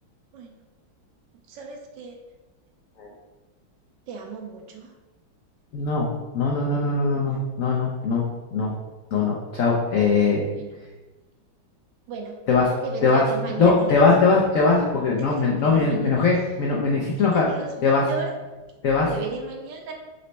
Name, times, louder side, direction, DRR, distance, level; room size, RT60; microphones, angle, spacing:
voice 1, 1.5-2.2 4.1-4.9 7.1-7.5 10.6-10.8 12.1-12.4 12.8-13.9 15.2-16.3 17.3-18.3 19.1-19.9, right 5 dB, 75° right, 3 dB, 1.2 m, -35 dB
voice 2, 5.7-8.2 8.5-8.7 9.1-10.4 12.5-12.7 13.0-13.2 13.6-17.4 17.8-18.0 18.8-19.1, left 4 dB, 90° left, -3 dB, 0.7 m, -21 dB
4.1 x 3.2 x 4.0 m, 1.2 s
omnidirectional pair, 2.2 m